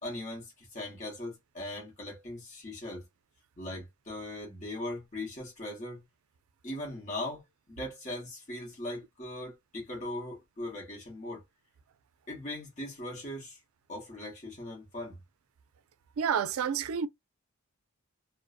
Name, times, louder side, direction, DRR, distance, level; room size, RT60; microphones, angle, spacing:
voice 1, 0.0-3.0 3.6-6.0 6.6-7.4 7.7-11.4 12.3-13.6 13.9-15.2, left 1 dB, 35° left, 0.9 m, -39 dB
voice 2, 16.2-17.1, right 7 dB, 75° right, 0.4 m, -29 dB
2.5 x 2.0 x 2.4 m
head